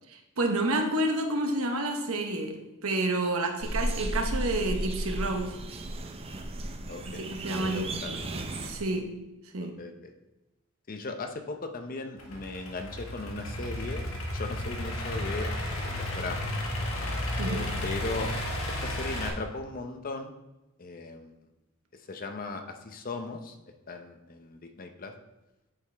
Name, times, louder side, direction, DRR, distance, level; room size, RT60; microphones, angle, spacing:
voice 1, 0.4-5.5 7.0-8.3 8.6-9.2 9.5-9.7 17.4-17.7, right 2 dB, 80° right, 3 dB, 1.0 m, -29 dB
sound 1, 3.6-8.8, right 1 dB, 30° right, 0.6 m, -34 dB
voice 2, 6.9-8.1 9.8-10.1 10.9-14.0 14.3-16.5 17.4-18.3 18.8-20.3 20.8-21.3 22.1-23.6 23.9-25.1, left 3 dB, 40° left, 6 dB, 0.6 m, -37 dB
Idling / Accelerating revving vroom, 12.2-19.3, left 1 dB, 80° left, 1.2 m, -33 dB
8.1 x 5.3 x 3.4 m, 1.0 s
head